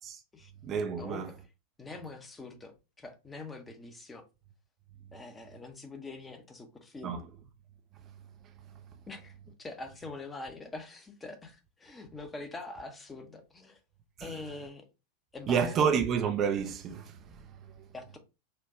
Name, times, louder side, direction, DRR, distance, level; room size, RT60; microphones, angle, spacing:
voice 1, 0.6-1.3 7.0-7.3 8.0-8.1 8.4-8.8 14.2-14.4 15.5-17.9, right 7 dB, 30° right, 0.4 m, -30 dB
voice 2, 1.8-4.2 5.1-7.2 9.1-13.8 14.2-14.8 15.3-15.7 17.9-18.2, left 3 dB, 15° left, 0.7 m, -44 dB
4.4 x 2.3 x 3.5 m
figure-of-eight pair, 90°, 0 cm